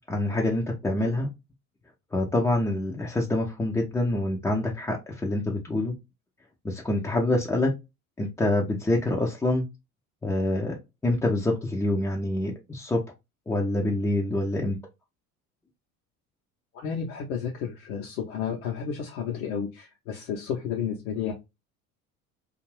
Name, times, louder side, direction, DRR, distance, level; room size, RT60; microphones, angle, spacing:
voice 1, 0.1-1.3 2.1-5.9 6.6-7.7 8.2-9.6 10.2-10.8 11.0-13.0 13.5-14.8, left 1 dB, 5° left, -1 dB, 0.4 m, -26 dB
voice 2, 16.7-21.3, left 7 dB, 70° left, 0 dB, 0.7 m, -32 dB
2.5 x 2.4 x 3.1 m, 0.23 s
figure-of-eight pair, 65°, 44 cm